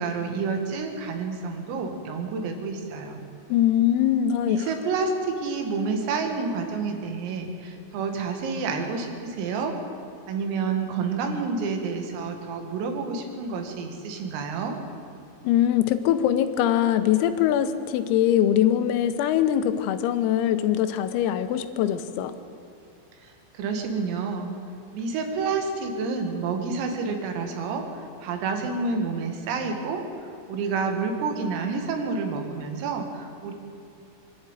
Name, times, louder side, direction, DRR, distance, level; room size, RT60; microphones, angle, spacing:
voice 1, 0.0-3.2 4.5-9.7 10.3-14.8 23.2-23.3 23.6-24.5 24.9-27.8 28.2-30.0 30.5-33.5, right 4 dB, 80° right, 4 dB, 4.7 m, -29 dB
voice 2, 3.5-4.7 15.4-22.4, left 11 dB, 85° left, 10 dB, 3.7 m, -22 dB
24.5 x 12.0 x 9.1 m, 2.7 s
omnidirectional pair, 6.0 m